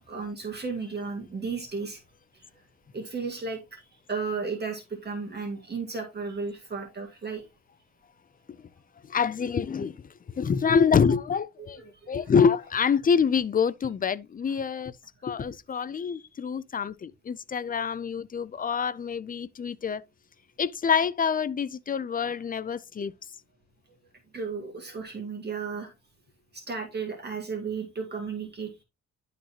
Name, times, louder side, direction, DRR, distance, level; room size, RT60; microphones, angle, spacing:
voice 1, 0.1-2.0 2.9-3.8 4.1-7.4 11.7-11.8 24.3-25.9 26.5-28.8, right 4 dB, 35° right, 2.0 m, -34 dB
voice 2, 9.1-14.9 15.2-20.0 20.6-23.1, left 6 dB, 30° left, 0.5 m, -26 dB
11.5 x 3.9 x 2.9 m
cardioid pair, 90°, 30 cm